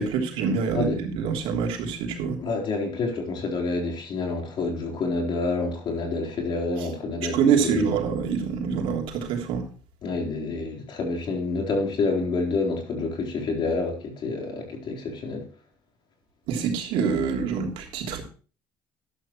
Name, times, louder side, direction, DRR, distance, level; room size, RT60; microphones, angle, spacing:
voice 1, 0.0-2.4 7.3-9.6 16.5-18.2, right 6 dB, 75° right, 3.2 m, -25 dB
voice 2, 2.4-7.9 10.0-15.5, left 3 dB, 55° left, 4.0 m, -28 dB
12.0 x 12.0 x 3.1 m
supercardioid pair, 85°, 9 cm